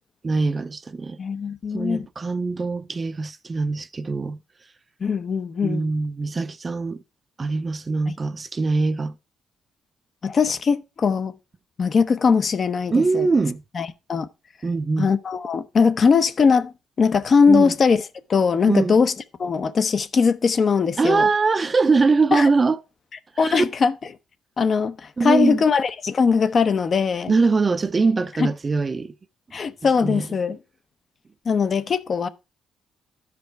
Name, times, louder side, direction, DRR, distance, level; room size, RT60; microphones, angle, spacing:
voice 1, 0.2-1.2 1.7-4.4 5.6-7.0 7.4-9.1 12.9-13.6 14.6-15.1 17.5-17.7 18.7-18.9 21.0-22.8 23.4-23.6 25.2-25.6 27.3-29.1 30.0-30.3, right 4 dB, 30° right, 0.6 m, -22 dB
voice 2, 1.2-2.1 5.0-5.9 8.1-8.2 10.2-11.3 11.8-13.3 13.7-14.3 15.0-19.1 19.4-21.3 22.3-22.5 23.4-23.9 24.6-27.3 28.4-28.5 29.5-30.6 31.4-32.3, left 5 dB, 45° left, 0.8 m, -20 dB
12.5 x 5.1 x 4.6 m
cardioid pair, 90°, 0 cm